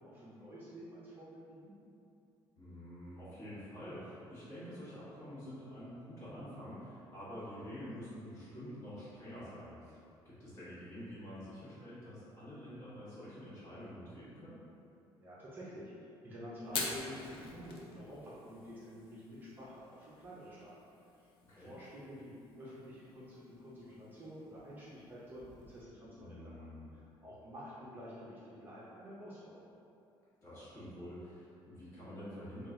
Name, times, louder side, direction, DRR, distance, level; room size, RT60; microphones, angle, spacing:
voice 1, 0.0-1.7 15.2-20.7 21.2-26.6 26.9-29.7, equal, 20° right, -8 dB, 0.6 m, -49 dB
voice 2, 2.6-14.6 21.5-21.7 26.1-26.9 30.4-32.7, equal, 35° left, -11 dB, 1.4 m, -48 dB
Fire, 16.6-25.8, left 4 dB, 85° left, 0.5 m, -47 dB
3.8 x 2.3 x 3.7 m, 2.7 s
cardioid pair, 165°, 9 cm